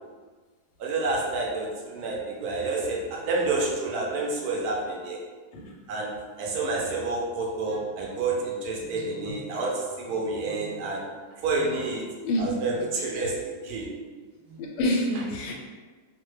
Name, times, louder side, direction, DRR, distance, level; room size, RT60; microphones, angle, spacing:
voice 1, 0.8-5.2 5.9-6.1 6.4-11.0 11.4-12.0 12.4-13.3 13.6-13.9 14.5-14.6, right 3 dB, 70° right, -2 dB, 1.0 m, -29 dB
voice 2, 14.6-15.5, left 1 dB, 90° left, 0 dB, 1.2 m, -27 dB
2.9 x 2.1 x 3.1 m, 1.4 s
omnidirectional pair, 1.9 m